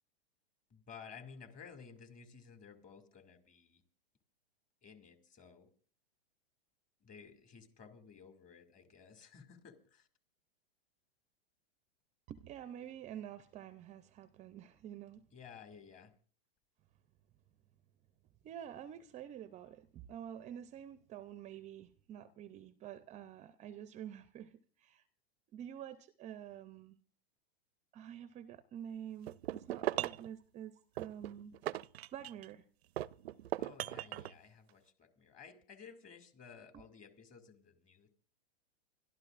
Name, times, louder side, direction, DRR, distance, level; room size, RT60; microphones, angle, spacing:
voice 1, 0.7-3.8 4.8-5.7 7.0-10.1 15.3-16.1 33.6-38.1, left 6 dB, 25° left, 7 dB, 2.4 m, -55 dB
voice 2, 12.3-15.3 18.4-25.0 25.5-27.0 27.9-31.5 32.1-32.6 36.7-36.8, right 10 dB, 25° right, 13 dB, 0.5 m, -48 dB
sound 1, 29.3-30.3 31.0-32.5 33.0-34.3, right 14 dB, 80° right, 0.5 m, -38 dB
29.0 x 12.5 x 2.5 m, 0.43 s
hypercardioid pair, 130°, 31 cm